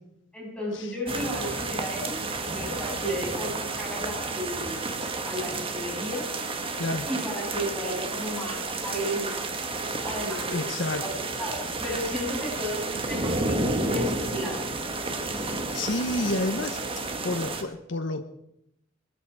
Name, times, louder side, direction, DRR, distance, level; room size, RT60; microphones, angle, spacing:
voice 1, 0.3-4.8 5.2-6.3 7.1-9.5 10.0-14.7, equal, 5° left, -5 dB, 7.5 m, -34 dB
sound 1, 1.1-17.6, right 2 dB, 30° right, 1.7 m, -31 dB
voice 2, 10.5-11.0 15.4-16.8 17.2-18.2, left 2 dB, 75° left, 6 dB, 1.1 m, -30 dB
21.5 x 13.5 x 4.9 m, 0.81 s
head